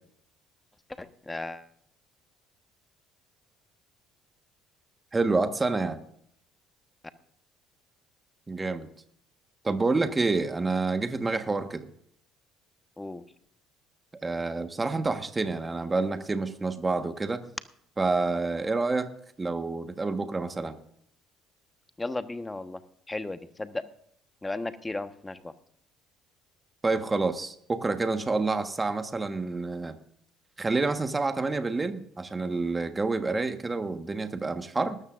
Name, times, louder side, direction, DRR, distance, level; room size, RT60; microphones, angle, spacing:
voice 1, 1.0-1.6 10.0-10.1 13.0-13.2 22.0-22.8 23.1-23.8 24.4-25.5, left 2 dB, 15° left, 10 dB, 1.2 m, -35 dB
voice 2, 5.1-6.0 8.5-8.9 9.6-11.9 14.2-17.4 18.0-19.1 19.4-20.8 26.8-29.9 30.6-35.0, right 3 dB, 25° right, 8 dB, 1.4 m, -28 dB
20.0 x 13.0 x 2.5 m, 0.67 s
hypercardioid pair, 60°, 0 cm